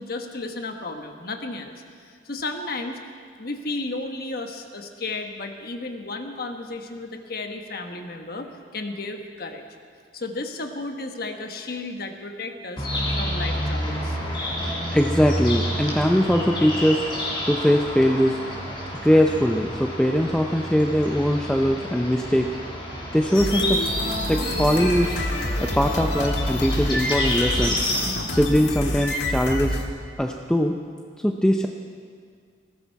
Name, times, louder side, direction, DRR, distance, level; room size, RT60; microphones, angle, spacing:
voice 1, 0.0-1.7 2.0-3.0 3.4-9.6 10.1-12.9 13.2-14.2, left 2 dB, 55° left, 5 dB, 1.3 m, -33 dB
sound 1, 12.8-28.0, equal, 25° left, 3.7 m, -29 dB
voice 2, 14.9-17.0 17.5-18.4 19.0-22.5 23.1-23.8 24.3-25.2 25.6-27.8 28.3-29.8 30.2-30.8 31.2-31.7, equal, 5° left, 2 dB, 0.5 m, -21 dB
sound 2, 23.3-29.8, left 1 dB, 75° left, 1.7 m, -27 dB
19.0 x 15.0 x 4.7 m, 2.1 s
head